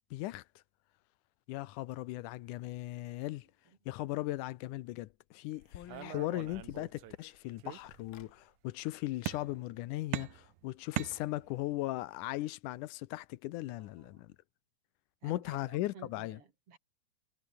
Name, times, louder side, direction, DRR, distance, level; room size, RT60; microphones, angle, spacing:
voice 1, 0.1-0.4 1.5-3.5 3.9-14.3 15.2-16.4, left 17 dB, 90° left, 2.3 m, -38 dB
sound 1, 5.1-5.2 5.6-7.4 7.9-8.3 9.6-9.7 10.9-11.3, left 11 dB, 65° left, 1.3 m, -52 dB
sound 2, 5.9-7.2 7.6-8.3 9.3-9.8 10.1-11.7, right 15 dB, 80° right, 2.3 m, -41 dB
voice 2, 13.8-14.2 15.2-16.8, right 6 dB, 50° right, 3.5 m, -55 dB
omnidirectional pair, 3.5 m